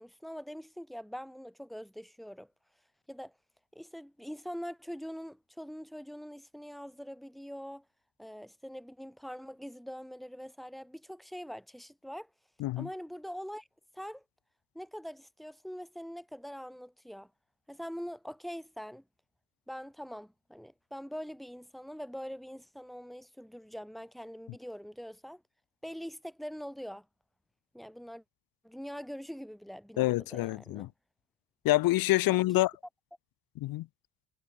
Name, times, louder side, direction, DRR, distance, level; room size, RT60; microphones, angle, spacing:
voice 1, 0.0-2.5 3.1-3.3 3.7-7.8 8.2-12.3 12.8-13.7 13.9-14.2 14.7-17.3 17.7-19.0 19.7-25.4 25.8-27.0 27.7-28.2 28.6-30.9 32.3-32.4, equal, ahead, 6.5 m, -43 dB
voice 2, 30.0-30.9 31.6-32.7 33.6-33.9, left 17 dB, 85° left, 1.4 m, -27 dB
cardioid pair, 160°, 34 cm